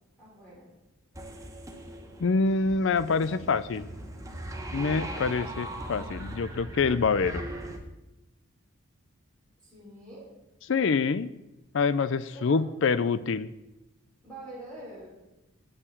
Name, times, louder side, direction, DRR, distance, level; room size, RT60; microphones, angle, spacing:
voice 1, 0.2-0.7 9.6-10.3 12.5-12.6 14.2-15.1, right 1 dB, 5° left, -8 dB, 4.4 m, -45 dB
sound 1, 1.1-7.8, right 1 dB, 15° right, 1.1 m, -39 dB
voice 2, 2.2-3.9 4.7-7.4 10.7-11.3 11.7-13.5, left 4 dB, 60° left, 15 dB, 0.4 m, -26 dB
8.7 x 6.9 x 8.5 m, 1.0 s
head